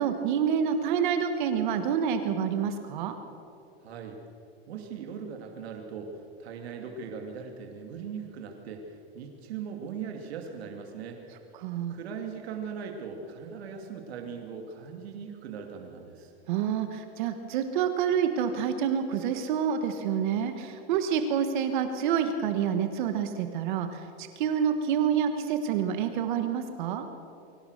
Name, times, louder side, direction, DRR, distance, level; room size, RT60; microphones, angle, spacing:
voice 1, 0.0-3.2 11.5-11.9 16.5-27.0, right 8 dB, 50° right, 7 dB, 1.4 m, -28 dB
voice 2, 3.8-4.2 4.7-11.2 11.9-16.3, right 6 dB, 80° right, 3 dB, 2.5 m, -39 dB
23.0 x 18.0 x 6.6 m, 2.8 s
supercardioid pair, 170°, 31 cm